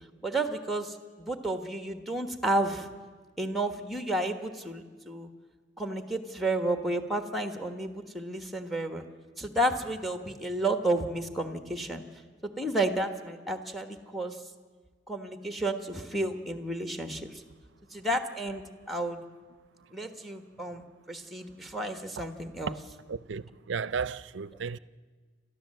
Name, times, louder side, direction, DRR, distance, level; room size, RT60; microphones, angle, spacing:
voice 1, 0.2-2.9 3.4-5.3 5.8-9.0 9.4-12.0 12.6-14.4 15.1-17.4 17.9-19.2 19.9-22.8, right 1 dB, ahead, 1.3 m, -31 dB
voice 2, 23.1-24.8, right 5 dB, 70° right, 0.5 m, -34 dB
28.5 x 13.0 x 7.6 m
head